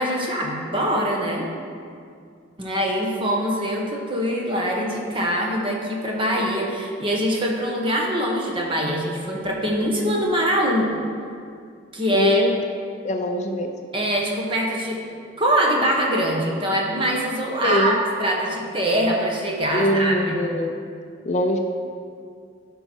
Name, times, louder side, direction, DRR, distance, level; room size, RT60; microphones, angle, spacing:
voice 1, 0.0-1.5 2.6-10.9 11.9-12.4 13.9-15.0 15.4-20.4, equal, 25° right, -1 dB, 1.2 m, -23 dB
voice 2, 12.1-12.6 13.0-13.7 17.6-18.0 19.7-20.7 21.3-21.6, left 1 dB, 35° left, 4 dB, 0.5 m, -22 dB
12.0 x 5.5 x 4.5 m, 2.3 s
head